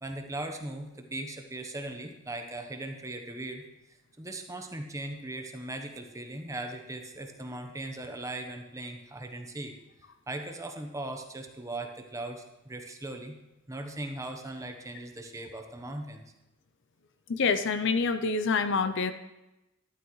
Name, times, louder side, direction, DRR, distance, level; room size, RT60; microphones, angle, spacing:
voice 1, 0.0-3.7 4.2-9.7 10.3-13.4 13.7-16.2, right 2 dB, 15° right, 4 dB, 1.0 m, -39 dB
voice 2, 17.3-19.1, left 4 dB, 60° left, 10 dB, 0.6 m, -26 dB
12.5 x 11.0 x 3.2 m, 0.96 s
head